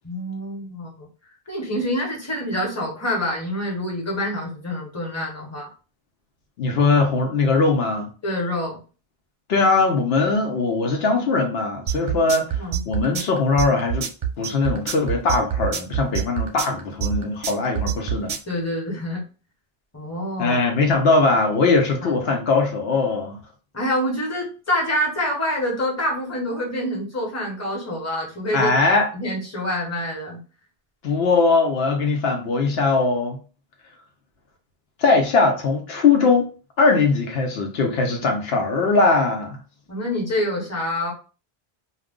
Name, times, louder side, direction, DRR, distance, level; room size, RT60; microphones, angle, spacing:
voice 1, 0.0-1.1 1.5-5.7 8.2-8.8 12.6-12.8 18.5-19.2 19.9-20.6 22.0-22.3 23.7-28.7 29.1-30.4 39.9-41.1, left 1 dB, 15° left, 0.9 m, -26 dB
voice 2, 6.6-8.1 9.5-14.1 14.4-18.4 20.4-23.4 28.5-29.1 31.0-33.4 35.0-36.5 36.8-39.6, left 3 dB, 75° left, 0.9 m, -20 dB
sound 1, 11.9-18.5, right 8 dB, 45° right, 0.6 m, -25 dB
2.3 x 2.3 x 3.5 m
omnidirectional pair, 1.0 m